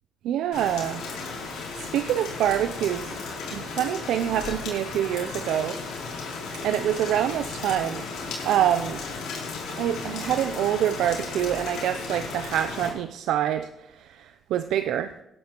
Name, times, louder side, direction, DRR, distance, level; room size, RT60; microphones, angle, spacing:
voice 1, 0.2-1.0 1.7-3.2 3.5-5.8 6.6-8.0 8.4-9.0 9.8-15.1, right 11 dB, 85° right, 10 dB, 0.4 m, -26 dB
Rain, 0.5-12.9, left 4 dB, 85° left, 4.3 m, -35 dB
17.5 x 10.5 x 2.9 m, 0.85 s
cardioid pair, 90°, 0 cm